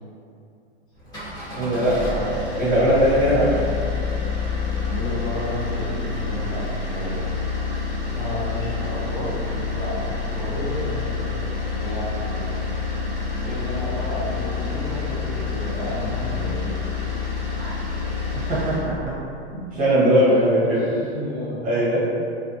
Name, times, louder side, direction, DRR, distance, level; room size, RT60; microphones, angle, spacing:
sound 1, 1.0-18.9, left 4 dB, 10° left, 0.7 m, -28 dB
voice 1, 1.6-3.6 17.6-17.7 18.5-19.1 19.5-20.8 21.6-22.0, equal, 25° right, -8 dB, 0.7 m, -20 dB
voice 2, 4.9-7.2 8.1-11.5 11.8-12.5 13.3-16.8 20.7-21.6, left 1 dB, 45° left, -7 dB, 0.9 m, -32 dB
2.4 x 2.4 x 2.5 m, 2.5 s
hypercardioid pair, 120°, 34 cm